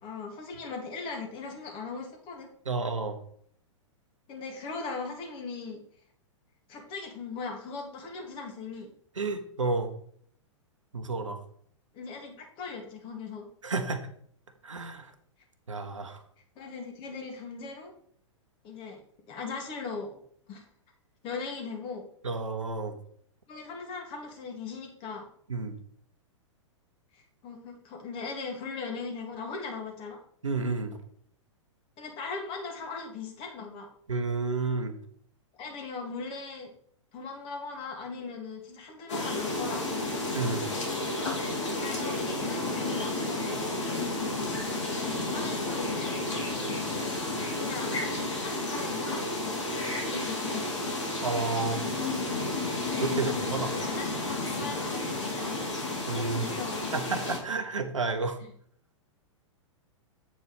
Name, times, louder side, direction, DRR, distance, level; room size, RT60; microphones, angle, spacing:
voice 1, 0.0-2.5 4.3-5.8 6.7-8.9 11.9-13.5 16.6-17.9 18.6-19.0 19.3-20.2 20.5-20.6 21.2-22.1 23.5-25.3 27.1-30.2 32.0-33.9 35.6-36.7 37.1-39.8 41.8-43.7 45.3-46.7 47.6-48.0 48.4-50.7 53.2-55.7 56.1-57.0, left 4 dB, 30° left, 2 dB, 2.0 m, -39 dB
voice 2, 2.7-3.2 9.2-9.9 10.9-11.4 13.6-14.1 14.6-15.1 15.7-16.2 22.2-23.0 25.5-25.8 30.4-31.0 34.1-34.9 40.3-40.7 51.2-51.8 52.6-52.7 53.0-53.7 56.1-56.5 56.9-58.4, right 3 dB, 75° right, 7 dB, 1.0 m, -31 dB
sound 1, 39.1-57.4, left 2 dB, 70° left, 2.6 m, -32 dB
8.4 x 4.2 x 5.0 m, 0.62 s
figure-of-eight pair, 105°, 16 cm